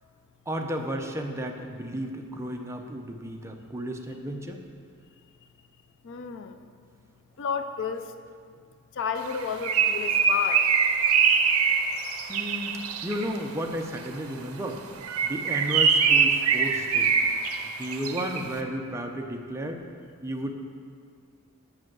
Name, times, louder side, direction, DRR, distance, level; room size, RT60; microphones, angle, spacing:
voice 1, 0.5-4.6 11.7-11.9 12.3-14.8 15.2-17.2 17.8-19.8 20.2-20.5, equal, 15° right, 3 dB, 0.6 m, -33 dB
voice 2, 6.0-6.5 7.4-8.0 9.0-10.6, left 6 dB, 55° left, 8 dB, 0.4 m, -31 dB
Bird, 9.3-13.4 15.0-18.5, right 6 dB, 70° right, 0.7 m, -23 dB
7.5 x 6.6 x 6.1 m, 2.1 s
head